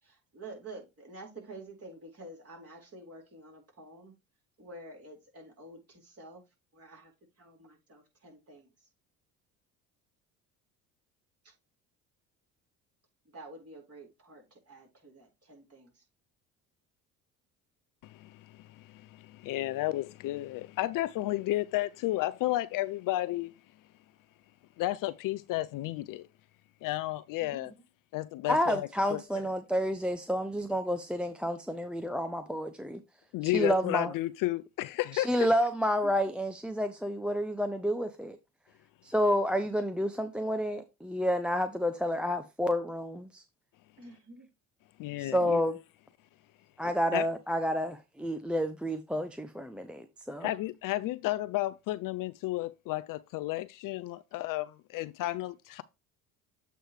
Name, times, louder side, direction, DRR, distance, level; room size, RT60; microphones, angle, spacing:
voice 1, 0.0-4.1 4.6-6.4 6.7-7.1 7.4-8.7 11.4-11.5 13.3-16.0 27.4-27.7 36.0-36.1 44.0-44.5, right 2 dB, 35° right, 4.1 m, -49 dB
voice 2, 18.0-23.5 24.8-26.2 26.8-27.7 28.1-29.2 33.3-35.3 45.0-45.6 46.8-47.3 50.4-55.8, left 16 dB, 55° left, 0.5 m, -32 dB
voice 3, 28.5-33.0 33.4-34.1 35.1-38.4 39.0-43.4 45.2-45.8 46.8-50.5, equal, ahead, 0.6 m, -30 dB
7.9 x 3.3 x 4.7 m
hypercardioid pair, 60°, 41 cm